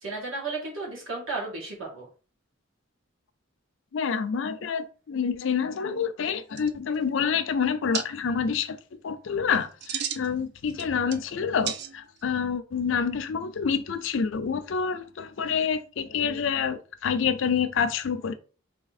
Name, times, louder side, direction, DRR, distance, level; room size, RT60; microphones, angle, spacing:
voice 1, 0.0-2.1, right 3 dB, 70° right, 1.8 m, -33 dB
voice 2, 3.9-8.8 9.0-18.3, left 6 dB, 65° left, 0.4 m, -27 dB
sound 1, 6.3-6.4 6.6-7.1 7.9-8.1 9.6-10.3 10.7-11.3 11.6-12.2, right 8 dB, 50° right, 0.4 m, -33 dB
3.5 x 2.8 x 4.0 m
head